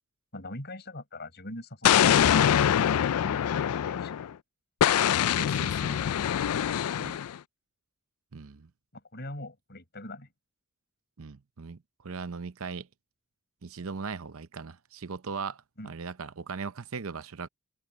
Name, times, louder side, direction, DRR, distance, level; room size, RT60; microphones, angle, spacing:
voice 1, 0.3-2.3 2.9-4.2 8.9-10.3 15.8-15.9, left 1 dB, 50° left, 5.7 m, -42 dB
Explosion, 1.8-4.3 4.8-7.4, left 9 dB, 90° left, 0.4 m, -24 dB
voice 2, 5.4-6.3 6.7-7.2 8.3-8.7 11.2-12.9 13.6-17.5, right 5 dB, 70° right, 0.7 m, -39 dB
head